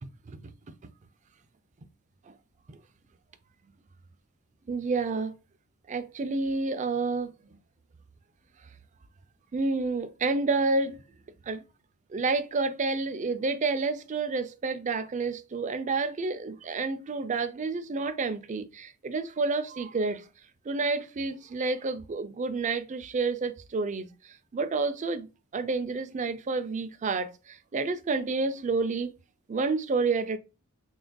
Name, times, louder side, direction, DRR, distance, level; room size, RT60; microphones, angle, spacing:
voice 1, 4.7-5.3 5.9-7.3 9.5-11.0 11.5-11.6 12.1-20.2 20.7-29.1 29.5-30.4, right 3 dB, 35° right, 0.4 m, -29 dB
5.9 x 2.6 x 2.2 m
head